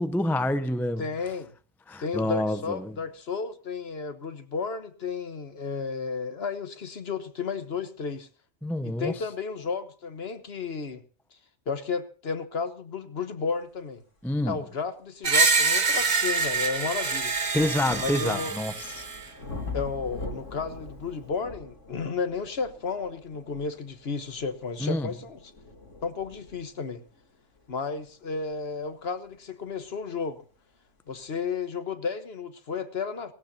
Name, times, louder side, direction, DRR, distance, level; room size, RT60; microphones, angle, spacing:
voice 1, 0.0-1.0 1.9-2.9 8.6-9.1 14.2-14.6 17.5-18.7 24.8-25.1, left 1 dB, ahead, 0.5 m, -27 dB
voice 2, 1.0-1.5 2.0-8.3 8.8-11.0 11.7-14.0 14.4-17.3 18.0-18.5 19.7-25.4 26.0-27.0 27.7-30.4 31.1-33.3, left 5 dB, 55° left, 1.4 m, -33 dB
sound 1, 14.6-14.7 15.3-30.0 30.9-31.0, left 3 dB, 70° left, 3.2 m, -44 dB
Screech, 15.2-19.2, right 4 dB, 35° right, 1.1 m, -25 dB
17.5 x 17.5 x 2.8 m
omnidirectional pair, 1.3 m